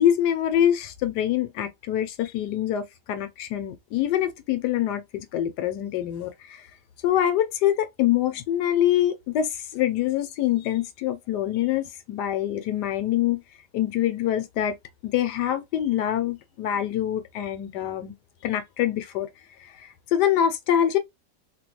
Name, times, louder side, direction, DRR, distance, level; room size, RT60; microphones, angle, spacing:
voice 1, 0.0-6.7 7.0-13.4 13.7-14.7 15.0-18.1 18.4-19.3 19.6-21.0, left 11 dB, 75° left, 1.1 m, -25 dB
3.4 x 2.2 x 3.0 m
omnidirectional pair, 1.9 m